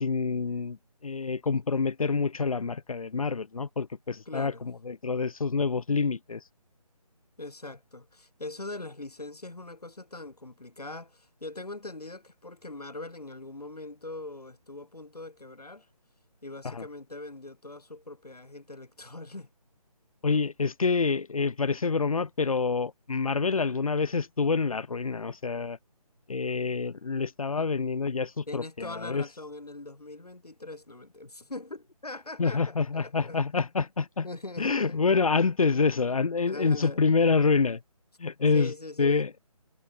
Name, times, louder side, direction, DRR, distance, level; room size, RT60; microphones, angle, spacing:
voice 1, 0.0-6.4 16.6-16.9 20.2-25.8 26.3-29.2 32.4-34.3 34.6-37.8 38.2-38.7 39.0-39.3, left 4 dB, 65° left, 1.1 m, -27 dB
voice 2, 4.3-4.6 7.4-15.9 16.4-19.5 28.5-33.4 34.2-35.2 36.5-37.0 38.5-39.3, left 2 dB, 90° left, 2.9 m, -41 dB
figure-of-eight pair, 155°, 19 cm